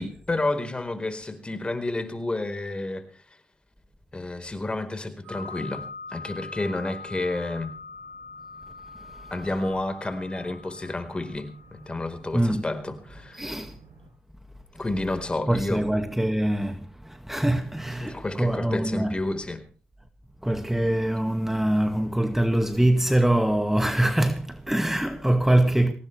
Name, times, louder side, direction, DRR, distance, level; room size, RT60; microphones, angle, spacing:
voice 1, 0.0-3.2 4.1-7.7 9.3-13.5 14.8-15.8 18.0-19.6, left 2 dB, 25° left, 4.3 m, -30 dB
sound 1, 5.2-14.1, left 3 dB, 75° right, 7.4 m, -43 dB
voice 2, 12.3-12.7 13.3-13.7 15.5-19.1 20.4-25.9, right 1 dB, 5° right, 2.0 m, -23 dB
23.5 x 18.0 x 3.4 m
supercardioid pair, 50°, 4 cm